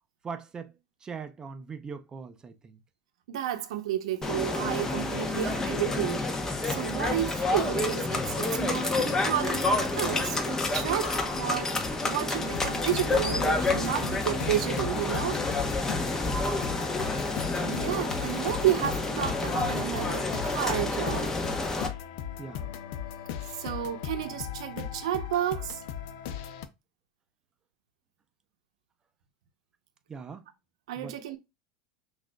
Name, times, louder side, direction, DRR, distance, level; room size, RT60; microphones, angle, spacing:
voice 1, 0.2-0.7 1.0-2.8 14.7-16.9 22.4-22.7 30.1-30.5 31.0-31.1, right 5 dB, 25° right, 0.5 m, -42 dB
voice 2, 3.3-6.3 6.6-15.4 17.5-21.3 23.6-25.8 30.9-31.4, right 11 dB, 85° right, 0.7 m, -31 dB
sound 1, 4.2-21.9, left 2 dB, 15° left, 0.8 m, -29 dB
sound 2, 12.4-26.7, left 9 dB, 70° left, 0.5 m, -38 dB
6.0 x 2.5 x 2.2 m
supercardioid pair, 115°, 3 cm